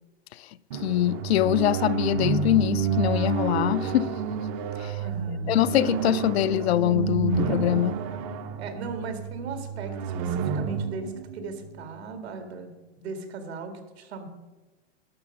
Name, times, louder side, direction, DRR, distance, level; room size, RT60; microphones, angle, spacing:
sound 1, 0.7-12.3, right 6 dB, 35° right, 0.6 m, -30 dB
voice 1, 0.8-4.1 4.8-4.9 5.5-8.0, left 13 dB, 75° left, 0.5 m, -23 dB
voice 2, 5.0-5.5 8.6-12.7 13.0-14.3, right 4 dB, 80° right, 2.0 m, -37 dB
11.5 x 7.0 x 5.4 m
supercardioid pair, 150°, 32 cm